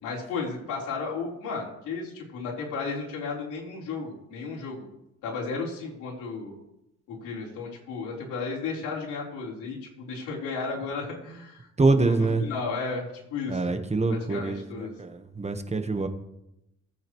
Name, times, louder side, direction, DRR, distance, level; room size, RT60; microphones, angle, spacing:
voice 1, 0.0-4.9 5.2-6.6 7.1-11.7 11.9-13.8 14.1-15.0, left 4 dB, 90° left, -4 dB, 4.0 m, -34 dB
voice 2, 11.8-12.5 13.5-16.1, right 3 dB, 20° right, 7 dB, 1.2 m, -25 dB
19.5 x 8.7 x 3.1 m, 0.87 s
cardioid pair, 90°, 30 cm